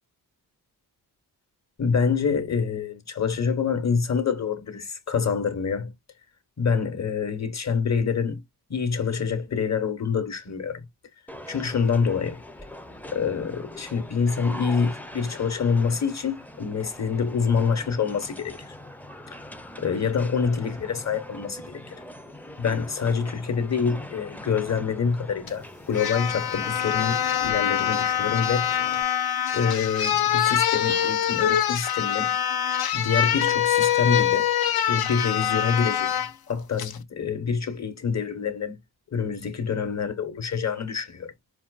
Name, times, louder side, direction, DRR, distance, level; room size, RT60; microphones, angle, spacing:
voice 1, 1.8-5.9 6.6-8.4 8.7-10.9 11.5-12.4 13.1-18.7 19.8-21.8 22.6-28.7 29.5-32.4 32.9-34.5 34.9-38.7 39.1-41.3, left 6 dB, 40° left, 1.1 m, -26 dB
sound 1, 11.3-29.0, left 1 dB, 5° left, 0.5 m, -42 dB
sound 2, 25.5-25.6 25.9-36.3 36.8-37.0, left 10 dB, 65° left, 0.7 m, -24 dB
4.5 x 2.3 x 2.3 m
cardioid pair, 50°, 40 cm